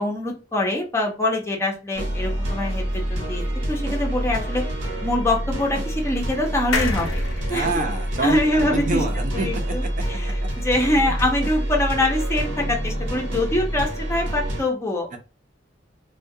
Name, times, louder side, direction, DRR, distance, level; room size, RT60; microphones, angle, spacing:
voice 1, 0.0-4.6 5.0-7.2 7.5-7.8 8.2-9.0 9.3-10.3 10.6-15.1, left 1 dB, 15° left, -1 dB, 0.5 m, -24 dB
sound 1, 1.9-14.6, right 1 dB, 90° right, 1.0 m, -27 dB
sound 2, 6.7-10.2 10.6-10.7 10.9-11.0, left 3 dB, 85° left, 0.5 m, -30 dB
voice 2, 7.5-9.9 10.2-10.3 10.9-11.1 15.1-15.2, right 2 dB, 45° right, 4 dB, 0.5 m, -27 dB
2.2 x 2.2 x 2.6 m, 0.31 s
head